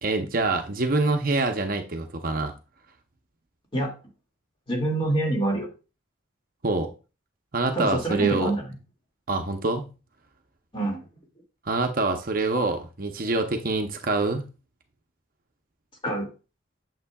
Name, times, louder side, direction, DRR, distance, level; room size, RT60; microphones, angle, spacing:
voice 1, 0.0-2.5 6.6-6.9 7.5-8.5 9.3-9.9 11.7-14.5, right 3 dB, 45° right, 5 dB, 0.8 m, -25 dB
voice 2, 4.7-5.7 7.7-8.7 10.7-11.1 16.0-16.3, right 2 dB, 25° left, 0 dB, 2.2 m, -26 dB
8.5 x 7.3 x 2.3 m, 0.32 s
head